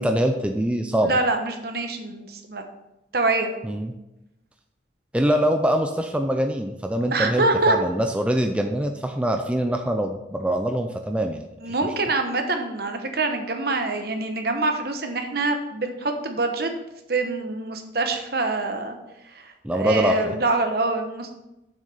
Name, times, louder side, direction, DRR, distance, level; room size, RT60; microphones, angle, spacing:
voice 1, 0.0-1.1 3.6-3.9 5.1-11.4 19.6-20.3, right 1 dB, 5° right, 5 dB, 0.4 m, -24 dB
voice 2, 0.9-2.6 3.1-3.5 7.1-7.8 11.6-16.7 17.1-19.0 19.3-21.3, right 3 dB, 55° right, 5 dB, 1.1 m, -25 dB
7.3 x 6.4 x 5.6 m, 0.94 s
head